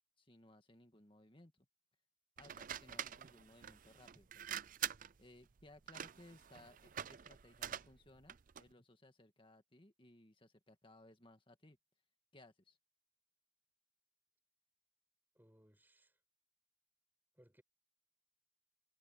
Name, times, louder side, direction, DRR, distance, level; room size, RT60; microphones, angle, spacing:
voice 1, 0.0-1.7 2.4-4.6 5.2-11.8 12.3-12.8, left 1 dB, 25° left, 1.9 m, -62 dB
sound 1, 2.4-8.7, right 10 dB, 45° right, 0.5 m, -46 dB
voice 2, 15.3-16.2 17.3-17.6, equal, 10° right, 4.9 m, -67 dB
head